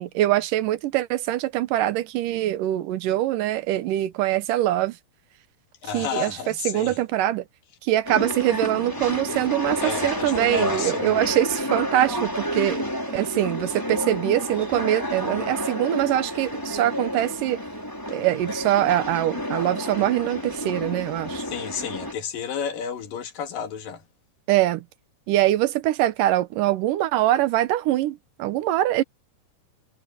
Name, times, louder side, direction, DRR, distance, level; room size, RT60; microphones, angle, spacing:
voice 1, 0.0-5.0 5.9-6.4 6.7-7.4 7.8-17.6 18.1-21.4 24.5-24.8 25.3-29.0, right 14 dB, 80° right, 2.5 m, -23 dB
voice 2, 5.8-7.0 9.0-9.5 9.8-11.3 21.4-24.0, left 7 dB, 90° left, 3.9 m, -32 dB
sound 1, 8.0-22.1, equal, 5° left, 4.0 m, -30 dB
omnidirectional pair, 3.8 m